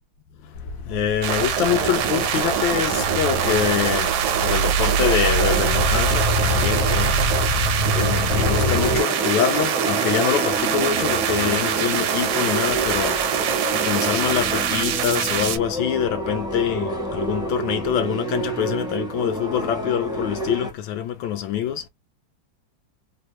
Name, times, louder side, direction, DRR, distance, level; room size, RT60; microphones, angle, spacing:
sound 1, 0.6-9.0, equal, 60° left, 1.3 m, -25 dB
voice 1, 0.9-7.2 7.9-13.2 13.4-21.9, left 9 dB, 80° left, 1.3 m, -25 dB
sound 2, 1.2-15.6, right 8 dB, 70° right, 1.0 m, -23 dB
sound 3, 8.3-20.7, right 1 dB, 5° right, 0.5 m, -29 dB
3.4 x 2.2 x 2.8 m
omnidirectional pair, 2.1 m